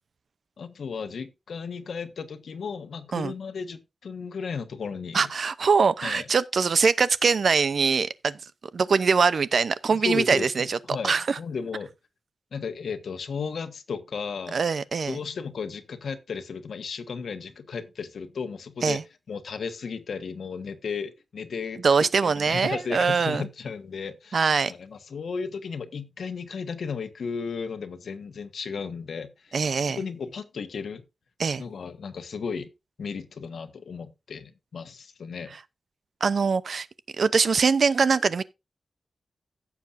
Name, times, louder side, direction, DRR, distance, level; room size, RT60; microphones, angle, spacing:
voice 1, 0.6-5.3 6.0-6.3 9.9-11.9 12.5-14.6 15.1-19.0 19.3-21.8 22.2-29.6 30.0-31.0 31.6-32.7 33.0-35.5, left 5 dB, 85° left, 1.4 m, -34 dB
voice 2, 5.1-8.4 8.7-10.8 11.0-11.4 14.5-15.2 18.8-19.0 21.8-23.5 24.3-24.7 29.5-30.0 31.4-31.6 36.2-36.9 37.2-38.4, right 5 dB, 60° right, 0.7 m, -23 dB
16.0 x 7.2 x 2.6 m
wide cardioid pair, 175°, 0 cm